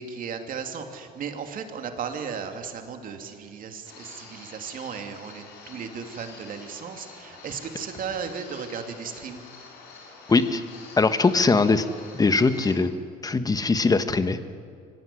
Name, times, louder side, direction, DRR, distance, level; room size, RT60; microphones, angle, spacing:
voice 1, 0.0-9.4, right 6 dB, 55° right, 5 dB, 2.7 m, -35 dB
sound 1, 3.8-12.8, left 4 dB, 85° left, 5.6 m, -47 dB
voice 2, 10.3-10.6 11.0-11.9 12.1-12.9 13.2-14.5, left 3 dB, 20° left, 11 dB, 1.4 m, -21 dB
24.5 x 16.5 x 10.0 m, 2.3 s
cardioid pair, 110°, 17 cm